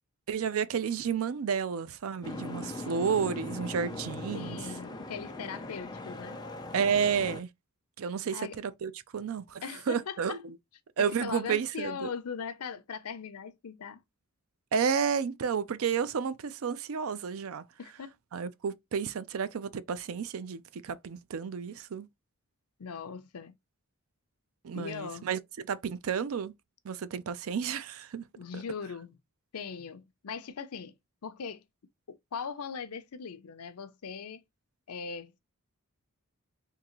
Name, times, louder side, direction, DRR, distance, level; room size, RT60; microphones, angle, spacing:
voice 1, 0.3-4.6 6.7-7.5 8.0-10.4 11.0-12.1 14.7-17.6 18.3-22.1 24.6-26.5 26.8-28.3 28.5-28.6, right 6 dB, 70° right, 0.4 m, -31 dB
Boat Water vehicle, 2.2-7.4, left 2 dB, 20° left, 0.5 m, -40 dB
voice 2, 4.3-6.4 8.3-8.6 9.6-10.4 11.0-14.0 17.8-18.1 22.8-23.5 24.7-25.3 28.4-29.2 29.5-30.9 31.2-31.6 32.1-34.4 34.9-35.4, left 6 dB, 85° left, 0.6 m, -40 dB
3.7 x 2.8 x 2.9 m
head